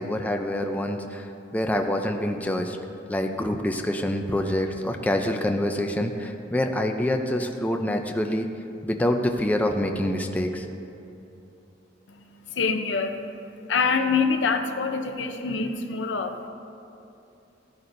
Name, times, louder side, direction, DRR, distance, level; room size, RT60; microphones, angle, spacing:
voice 1, 0.0-2.8 3.1-8.5 8.8-10.7, left 1 dB, 10° left, 4 dB, 0.5 m, -26 dB
voice 2, 12.1-16.5, left 5 dB, 80° left, 7 dB, 0.7 m, -26 dB
15.5 x 9.9 x 2.6 m, 2.7 s
head